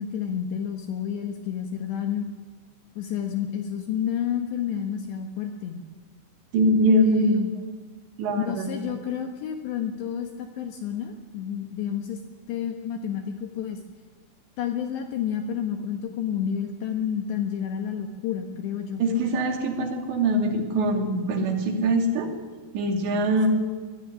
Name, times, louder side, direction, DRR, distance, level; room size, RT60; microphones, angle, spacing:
voice 1, 0.0-2.3 3.0-5.8 7.0-7.5 8.4-12.2 12.5-13.8 14.6-19.0, left 8 dB, 70° left, 4 dB, 3.3 m, -30 dB
voice 2, 6.5-7.3 8.2-8.7 19.0-22.3 22.7-23.5, right 1 dB, 65° right, 3 dB, 4.8 m, -23 dB
23.0 x 17.5 x 10.0 m, 1.4 s
omnidirectional pair, 5.6 m